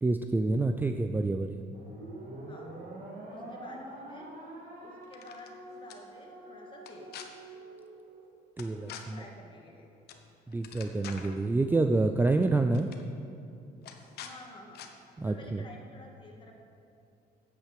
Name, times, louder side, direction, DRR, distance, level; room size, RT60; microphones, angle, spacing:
voice 1, 0.0-1.6 8.6-9.2 10.5-12.9 15.2-15.6, right 2 dB, 10° right, 7 dB, 0.4 m, -28 dB
sound 1, 1.7-8.3, right 1 dB, 55° right, 2.5 m, -46 dB
voice 2, 3.3-4.3 4.8-7.2 8.8-10.0 14.2-14.8 15.2-16.5, left 2 dB, 30° left, 1 dB, 1.9 m, -51 dB
sound 2, 5.0-5.5 5.9-6.0 6.8-7.3 8.6-9.0 10.1-10.3 10.5-11.4 12.3-12.5 12.7-13.0 13.8-14.3 14.7-14.9, left 9 dB, 70° left, 1.0 m, -45 dB
9.2 x 8.3 x 6.7 m, 2.7 s
cardioid pair, 110°, 17 cm